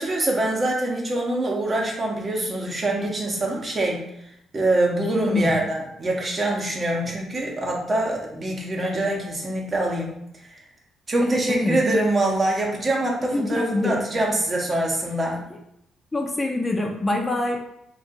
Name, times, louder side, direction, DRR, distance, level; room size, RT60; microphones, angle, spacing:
voice 1, 0.0-4.0 4.5-10.1 11.1-15.4, right 1 dB, 35° right, -1 dB, 0.8 m, -24 dB
voice 2, 5.2-5.6 11.2-11.8 13.3-13.9 15.5-15.6 16.1-17.6, left 2 dB, 20° left, 2 dB, 0.4 m, -25 dB
2.6 x 2.4 x 3.8 m, 0.77 s
cardioid pair, 90°, 0 cm